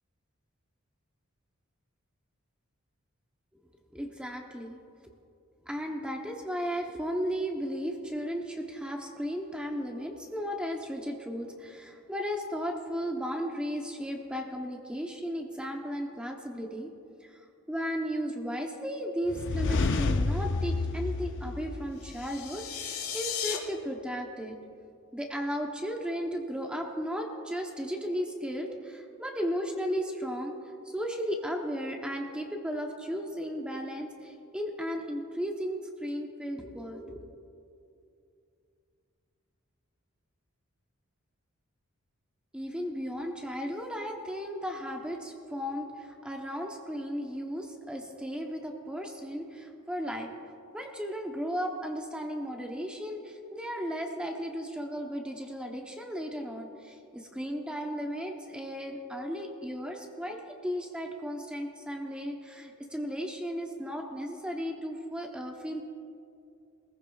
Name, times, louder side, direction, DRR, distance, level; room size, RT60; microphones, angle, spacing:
voice 1, 3.9-4.8 5.6-16.9 17.3-24.6 25.1-30.5 30.8-37.3 42.5-50.3 50.7-65.8, equal, 5° right, 2 dB, 0.8 m, -35 dB
sound 1, 19.3-22.3, left 3 dB, 60° left, 0.6 m, -29 dB
sound 2, 22.0-23.6, left 8 dB, 90° left, 1.4 m, -35 dB
21.5 x 15.0 x 2.3 m, 2.5 s
head